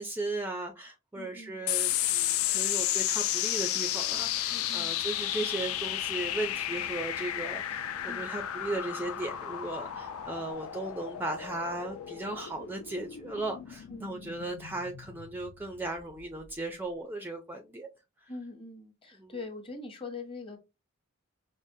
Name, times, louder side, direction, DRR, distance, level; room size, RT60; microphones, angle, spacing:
voice 1, 0.0-17.9 19.2-19.3, right 2 dB, 10° right, 0.3 m, -37 dB
voice 2, 1.1-1.7 4.5-5.0 8.1-8.3 13.9-14.4 18.3-20.6, left 3 dB, 25° left, 0.8 m, -43 dB
sound 1, 1.7-16.5, left 12 dB, 80° left, 0.4 m, -33 dB
sound 2, 3.9-10.5, right 6 dB, 80° right, 0.5 m, -52 dB
sound 3, 5.1-12.4, left 4 dB, 55° left, 0.7 m, -53 dB
4.9 x 2.0 x 2.6 m
head